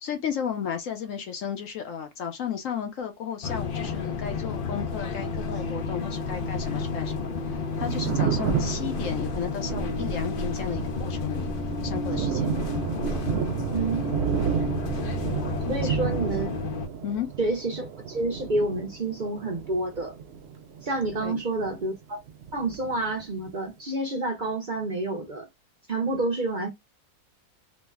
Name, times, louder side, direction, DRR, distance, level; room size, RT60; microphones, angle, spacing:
voice 1, 0.0-7.3 7.8-11.5 11.8-12.5 15.7-15.9 17.0-17.3 21.2-21.4, left 8 dB, 65° left, 0.9 m, -33 dB
sound 1, 3.4-16.9, left 3 dB, 80° left, 0.4 m, -31 dB
Thunder, 7.6-22.0 22.3-23.5, right 7 dB, 90° right, 0.5 m, -32 dB
voice 2, 13.7-14.1 15.7-16.5 17.4-20.1 20.8-22.2 22.5-25.5 25.9-26.7, right 2 dB, 45° right, 0.6 m, -29 dB
3.1 x 2.1 x 3.4 m
omnidirectional pair, 1.7 m